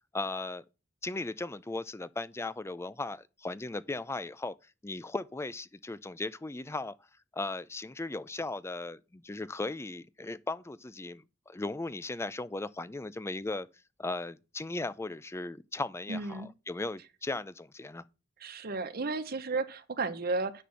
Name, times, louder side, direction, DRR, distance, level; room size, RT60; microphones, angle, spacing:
voice 1, 0.1-0.6 1.0-4.5 4.8-7.0 7.3-13.7 14.0-18.0, left 2 dB, 15° left, 0.4 m, -37 dB
voice 2, 16.1-16.5 18.4-20.6, right 3 dB, 55° right, 0.9 m, -33 dB
10.0 x 4.4 x 6.3 m
head